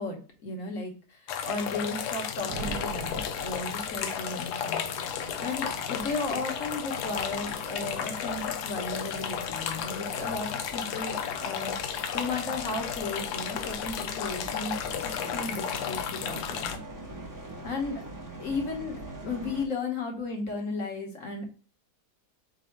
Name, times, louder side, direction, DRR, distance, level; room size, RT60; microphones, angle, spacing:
voice 1, 0.0-4.9 5.4-16.8 17.6-18.0 18.4-21.4, left 3 dB, 55° left, 2 dB, 1.4 m, -35 dB
sound 1, 1.3-16.8, left 8 dB, 80° left, 1.2 m, -33 dB
sound 2, 2.5-4.4, right 3 dB, 75° right, 1.4 m, -39 dB
sound 3, 4.8-19.7, right 2 dB, 20° right, 0.6 m, -44 dB
4.3 x 2.7 x 4.5 m, 0.38 s
omnidirectional pair, 1.7 m